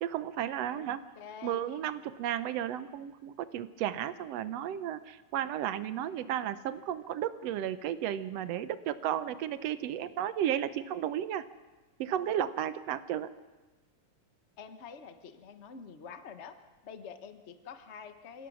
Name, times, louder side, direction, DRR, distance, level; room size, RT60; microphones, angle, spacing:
voice 1, 0.0-1.0 1.4-11.4 12.0-13.3, right 10 dB, 70° right, 13 dB, 1.7 m, -33 dB
voice 2, 1.1-1.6 14.6-16.6 16.8-18.5, left 6 dB, 70° left, 8 dB, 0.6 m, -46 dB
27.5 x 16.5 x 6.3 m, 1.2 s
omnidirectional pair, 3.4 m